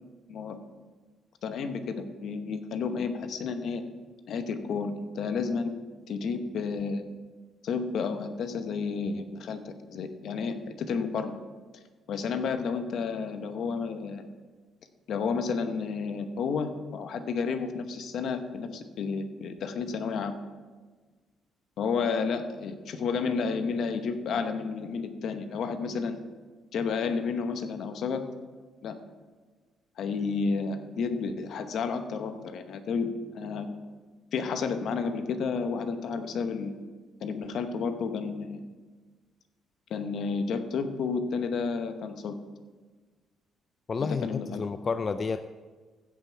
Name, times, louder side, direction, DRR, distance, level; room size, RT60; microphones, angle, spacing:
voice 1, 1.4-3.8 4.3-5.7 6.1-7.0 7.6-11.3 12.1-14.3 15.1-20.4 21.8-26.2 26.7-28.3 28.8-28.9 30.0-33.7 34.3-36.8 37.2-38.6 39.9-42.3 44.0-44.7, left 5 dB, 70° left, 8 dB, 0.9 m, -31 dB
voice 2, 43.9-45.6, left 5 dB, 40° left, 11 dB, 0.3 m, -31 dB
15.5 x 5.6 x 4.7 m, 1.4 s
cardioid pair, 90°, 0 cm